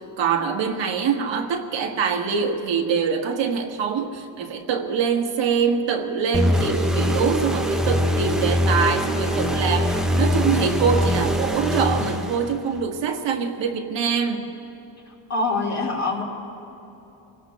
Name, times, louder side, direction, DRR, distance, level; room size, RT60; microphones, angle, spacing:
voice 1, 0.0-14.5, right 6 dB, 75° right, 2 dB, 1.4 m, -24 dB
sound 1, 6.3-12.8, equal, ahead, 0.6 m, -23 dB
voice 2, 15.3-16.2, left 3 dB, 35° left, -2 dB, 2.1 m, -24 dB
28.0 x 17.5 x 2.3 m, 2.9 s
cardioid pair, 175°, 45 cm